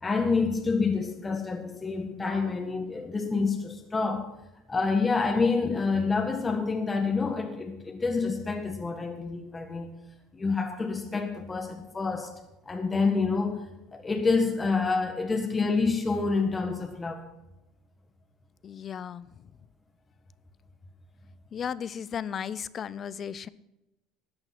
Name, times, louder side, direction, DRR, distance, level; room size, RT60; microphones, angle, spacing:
voice 1, 0.0-4.3 4.7-9.9 10.3-12.3 12.6-13.7 13.9-17.2, left 4 dB, 20° left, 3 dB, 1.5 m, -27 dB
voice 2, 18.6-19.3 21.5-23.5, left 8 dB, 35° left, 18 dB, 0.5 m, -35 dB
13.5 x 8.8 x 5.9 m, 0.97 s
supercardioid pair, 105°, 0 cm